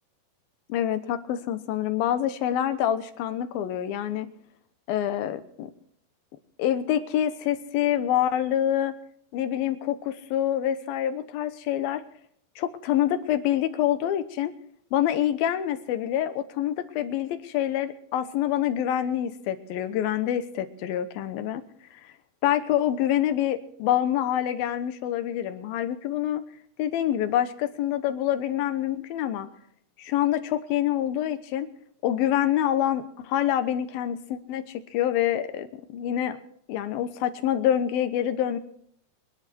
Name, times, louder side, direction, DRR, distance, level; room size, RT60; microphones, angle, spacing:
voice 1, 0.7-4.3 4.9-5.7 6.6-8.9 9.3-12.0 12.6-14.5 14.9-21.6 22.4-26.4 26.8-29.5 30.0-31.7 32.0-36.4 36.7-38.6, left 11 dB, 90° left, 10 dB, 2.9 m, -26 dB
24.0 x 10.5 x 4.5 m, 0.65 s
omnidirectional pair, 4.1 m